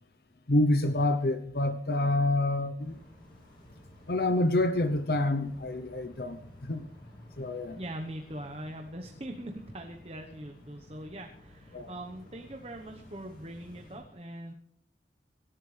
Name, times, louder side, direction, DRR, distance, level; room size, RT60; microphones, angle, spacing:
voice 1, 0.5-2.9 4.1-6.8 7.4-7.8 11.7-11.9, left 2 dB, 60° left, 9 dB, 0.8 m, -27 dB
sound 1, 2.8-14.0, left 1 dB, 25° left, 8.0 m, -53 dB
voice 2, 7.7-14.5, right 1 dB, 35° right, 3 dB, 1.1 m, -42 dB
25.0 x 12.0 x 3.3 m, 0.63 s
head